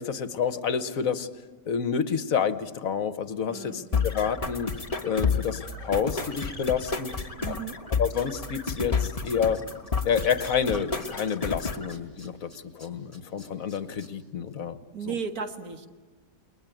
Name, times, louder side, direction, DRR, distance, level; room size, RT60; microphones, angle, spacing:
voice 1, 0.0-7.1 7.5-7.6 8.0-9.6 10.0-14.8 15.1-15.2, left 7 dB, 65° left, 12 dB, 1.4 m, -29 dB
voice 2, 3.5-3.9 7.4-7.8 14.9-15.9, right 6 dB, 70° right, 6 dB, 2.2 m, -35 dB
sound 1, 3.9-11.9, left 5 dB, 25° left, 1.3 m, -30 dB
Tools, 8.6-8.7 9.0-10.2 10.4-14.1 14.5-14.6, equal, 10° right, 4.6 m, -52 dB
29.5 x 21.0 x 9.2 m, 1.4 s
omnidirectional pair, 1.6 m